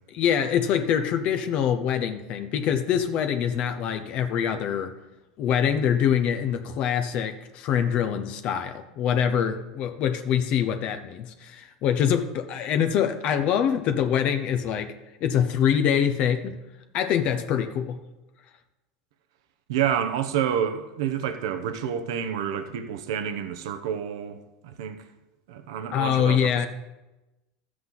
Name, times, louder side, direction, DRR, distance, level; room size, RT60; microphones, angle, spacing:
voice 1, 0.1-4.9 5.4-14.9 15.2-16.6 16.9-18.0 25.9-26.7, left 8 dB, 50° left, 0.8 m, -24 dB
voice 2, 19.7-25.0 25.5-26.7, right 9 dB, 80° right, 0.9 m, -29 dB
12.5 x 7.8 x 4.0 m
supercardioid pair, 105°, 3 cm